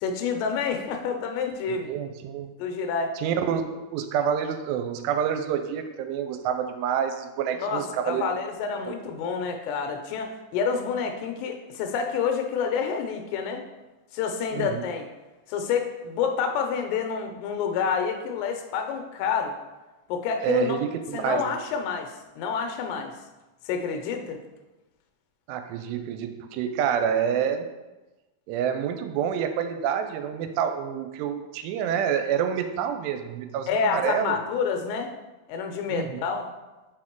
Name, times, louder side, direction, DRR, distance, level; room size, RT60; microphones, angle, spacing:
voice 1, 0.0-1.9 2.6-3.1 7.6-13.6 14.1-15.1 15.5-19.6 20.1-20.8 21.1-23.2 23.7-24.4 33.7-35.1 35.5-36.5, left 6 dB, 85° left, 5 dB, 2.7 m, -28 dB
voice 2, 1.7-2.5 3.2-3.7 3.9-8.3 8.9-9.0 14.5-14.8 20.4-21.6 25.5-27.7 28.5-34.4 35.9-36.2, right 8 dB, 85° right, 7 dB, 2.6 m, -28 dB
5.8 x 4.3 x 4.5 m, 1.1 s
omnidirectional pair, 4.9 m